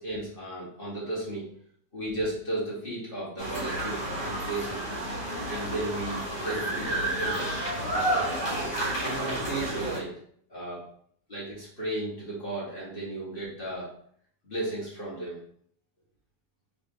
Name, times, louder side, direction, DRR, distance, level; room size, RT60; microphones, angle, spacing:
voice 1, 0.0-1.5 1.9-5.0 5.5-7.6 8.4-10.1 10.5-10.8 11.3-13.9 14.4-15.4, right 2 dB, 35° left, -7 dB, 2.1 m, -35 dB
sound 1, 3.4-10.0, right 1 dB, 85° left, 2.4 m, -30 dB
3.8 x 3.8 x 3.6 m, 0.62 s
omnidirectional pair, 1.8 m